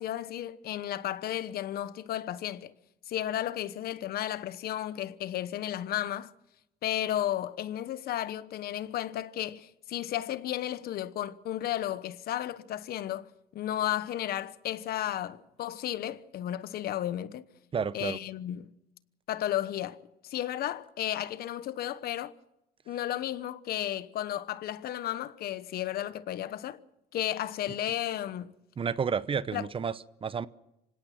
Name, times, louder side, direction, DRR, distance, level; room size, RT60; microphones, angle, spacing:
voice 1, 0.0-2.7 3.1-6.3 6.8-17.4 17.9-18.7 19.3-20.0 20.2-22.3 22.9-26.8 27.1-28.5 29.5-29.7, left 12 dB, 65° left, 1.1 m, -33 dB
voice 2, 17.7-18.2 28.8-30.5, right 6 dB, 30° right, 0.8 m, -31 dB
25.5 x 17.5 x 5.9 m
cardioid pair, 110°, 17 cm